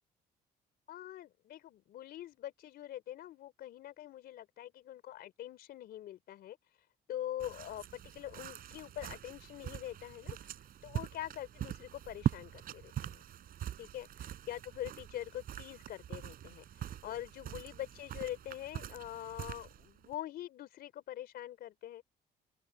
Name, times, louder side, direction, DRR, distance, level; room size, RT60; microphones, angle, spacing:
voice 1, 0.9-6.6 7.1-10.5 10.8-13.2 13.8-22.0, left 12 dB, 65° left, 3.6 m, -44 dB
sound 1, 7.4-20.1, right 11 dB, 60° right, 5.1 m, -42 dB
cardioid pair, 110°, 17 cm